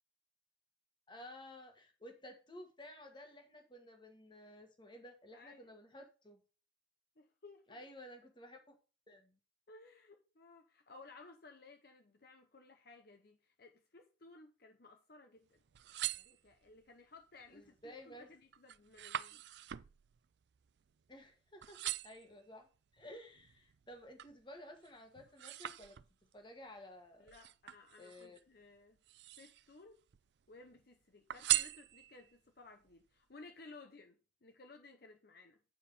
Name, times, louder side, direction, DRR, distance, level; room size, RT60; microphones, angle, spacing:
voice 1, 1.1-6.4 7.7-8.7 9.1-9.4 17.5-18.3 21.1-22.7 22.9-26.0 26.3-27.3 28.0-28.4, left 1 dB, 25° left, 1.4 m, -54 dB
voice 2, 5.3-5.7 7.2-7.8 9.7-15.6 16.1-19.4 27.2-29.0 29.4-30.0 30.5-35.6, left 3 dB, 50° left, 0.8 m, -58 dB
sound 1, 15.6-16.9 17.4-17.9 18.2-21.3 21.6-22.3 22.9-24.4 24.8-26.4 27.3-28.4 29.0-29.8 30.1-30.8 31.3-32.4 32.9-33.0, right 14 dB, 60° right, 0.4 m, -41 dB
8.8 x 4.8 x 5.3 m
head